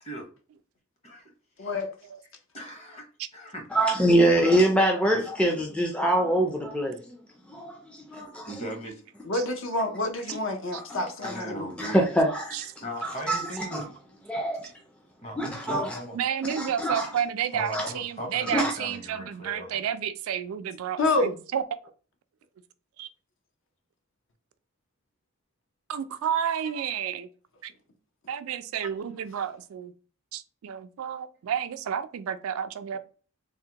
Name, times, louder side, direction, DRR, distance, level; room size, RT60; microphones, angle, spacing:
voice 1, 2.5-3.0 3.3-3.7 5.1-5.2 8.5-9.0 11.2-12.1 12.8-13.8 15.2-16.2 17.5-19.8, equal, 30° left, 0.9 m, -37 dB
voice 2, 3.7-7.1 7.5-8.5 10.9-11.3 11.8-12.6 13.0-13.8 14.3-14.7 15.4-16.0 16.6-17.1 17.7-17.8 18.5-18.7, right 1 dB, 5° left, 0.4 m, -24 dB
voice 3, 9.2-11.7 15.7-15.9 21.0-21.4, left 2 dB, 60° left, 0.6 m, -28 dB
voice 4, 16.1-21.6 23.0-23.1 25.9-27.3 27.6-27.7 28.3-29.9 30.3-33.0, right 8 dB, 75° right, 0.3 m, -31 dB
3.4 x 2.1 x 2.8 m
head